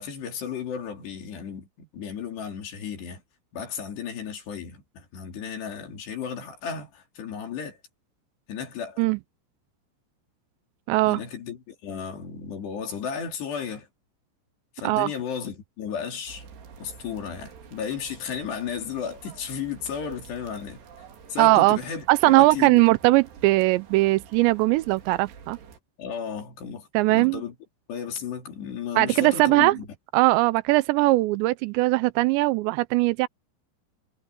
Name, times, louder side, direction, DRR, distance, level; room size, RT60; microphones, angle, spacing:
voice 1, 0.0-3.2 3.5-7.8 8.5-9.0 11.0-13.9 14.8-16.5 16.8-20.8 21.3-22.8 26.0-27.5 27.9-29.9, left 7 dB, 70° left, 5.9 m, -34 dB
voice 2, 10.9-11.2 14.8-15.1 21.4-21.8 22.1-25.6 26.9-27.4 29.0-29.8 30.1-33.3, right 20 dB, 90° right, 2.9 m, -20 dB
sound 1, 16.3-25.8, right 6 dB, 70° right, 5.0 m, -48 dB
omnidirectional pair, 5.1 m